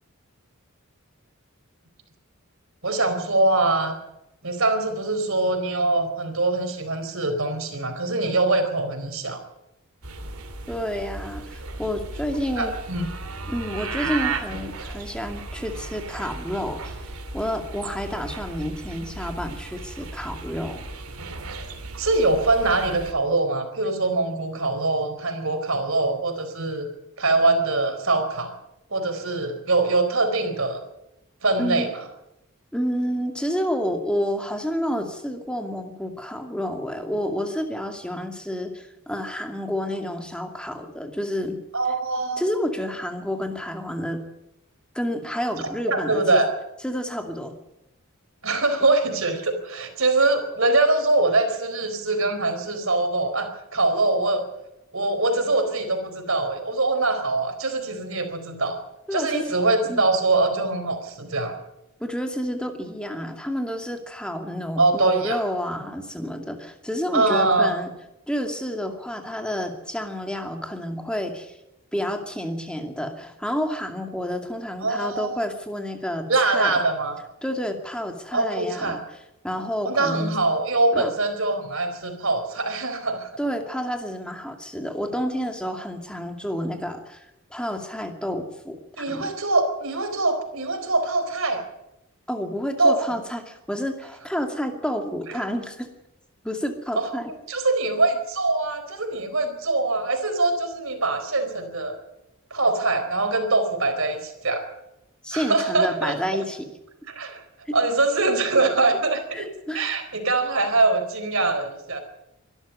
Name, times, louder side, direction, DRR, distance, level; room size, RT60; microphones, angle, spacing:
voice 1, 2.8-4.0 4.4-9.4 12.6-13.1 22.0-26.9 27.2-28.5 28.9-30.8 31.4-31.9 41.7-42.4 45.6-46.5 48.4-54.4 54.9-58.8 59.1-61.6 64.8-65.4 67.1-67.7 74.8-75.3 76.3-77.2 78.3-79.0 79.8-83.3 89.0-91.6 92.8-93.0 95.3-95.4 97.0-97.1 97.5-101.9 102.5-104.6 105.3-106.1 107.1-107.4 107.7-109.5 109.7-112.0, right 2 dB, 65° right, 7 dB, 4.2 m, -23 dB
sound 1, 10.0-23.1, right 3 dB, 80° right, 2.9 m, -35 dB
voice 2, 10.7-12.7 13.5-17.0 17.3-20.9 31.6-31.9 32.7-41.6 42.4-44.2 44.9-46.4 46.8-47.5 59.1-59.5 59.9-60.1 62.0-67.9 68.3-71.6 71.9-76.8 77.4-79.0 79.4-80.4 80.9-81.1 83.4-89.3 92.3-95.9 96.4-97.3 105.2-106.7 107.7-107.8 109.3-109.8, equal, 5° left, 4 dB, 2.4 m, -29 dB
24.0 x 13.0 x 8.4 m, 0.86 s
head